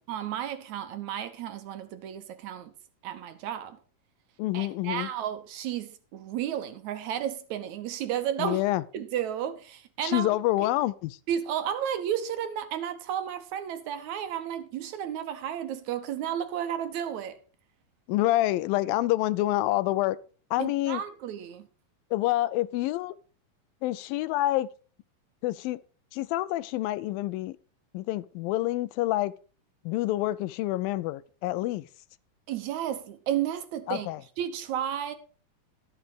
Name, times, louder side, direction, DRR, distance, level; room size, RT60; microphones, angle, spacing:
voice 1, 0.1-2.7 3.0-3.8 4.5-8.6 8.9-10.3 10.6-10.7 11.3-17.4 20.6-21.7 32.5-34.1 34.4-35.1, right 10 dB, 65° right, 2.0 m, -32 dB
voice 2, 4.4-5.1 8.4-8.8 10.0-11.2 18.1-20.2 20.5-21.0 22.1-23.1 23.8-24.7 25.4-25.8 26.1-27.6 27.9-29.3 29.9-31.8 33.9-34.2, left 16 dB, 85° left, 2.4 m, -27 dB
12.5 x 7.3 x 5.0 m
omnidirectional pair, 4.0 m